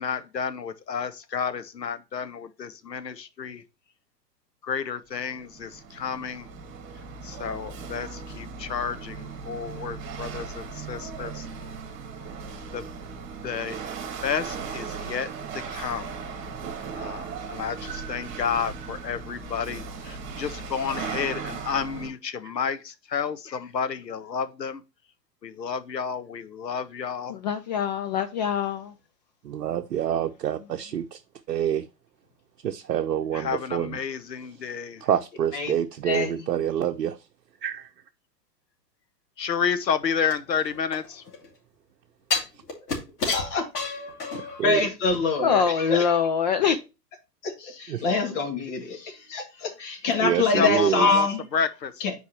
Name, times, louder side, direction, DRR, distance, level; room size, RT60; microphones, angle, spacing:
voice 1, 0.0-3.6 4.6-6.5 7.2-11.5 12.7-12.9 13.4-13.8 14.2-16.2 16.9-24.8 25.4-27.4 33.3-35.1 39.4-41.2 50.6-51.3 51.5-51.9, left 6 dB, 85° left, 0.9 m, -31 dB
Chatter / Hiss / Rattle, 5.2-22.1, right 5 dB, 25° right, 2.0 m, -37 dB
voice 2, 27.3-28.9 45.4-46.8, left 7 dB, 30° left, 0.4 m, -24 dB
voice 3, 29.4-31.2 31.5-31.8 32.6-34.0 35.0-37.3 37.6-37.9 44.3-44.8 47.9-48.0 50.2-51.1, right 10 dB, 70° right, 0.7 m, -27 dB
sound 1, 40.3-41.5 42.3-44.7 45.0-45.1, left 4 dB, 70° left, 3.0 m, -30 dB
voice 4, 43.3-44.0 44.6-46.2 47.4-51.4 52.0-52.1, left 4 dB, 45° left, 2.2 m, -26 dB
8.1 x 4.7 x 3.0 m
figure-of-eight pair, 110°, 49 cm